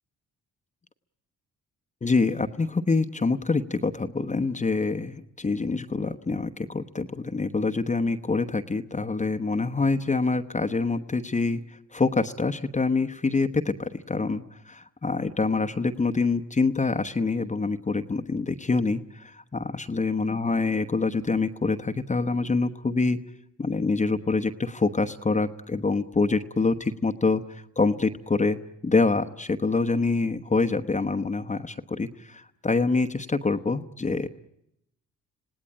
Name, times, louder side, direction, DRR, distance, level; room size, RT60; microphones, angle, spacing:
voice 1, 2.0-11.6 11.9-23.2 23.6-28.6 28.8-34.3, left 3 dB, 25° left, 7 dB, 1.0 m, -26 dB
26.5 x 18.0 x 8.8 m, 0.81 s
cardioid pair, 75°, 30 cm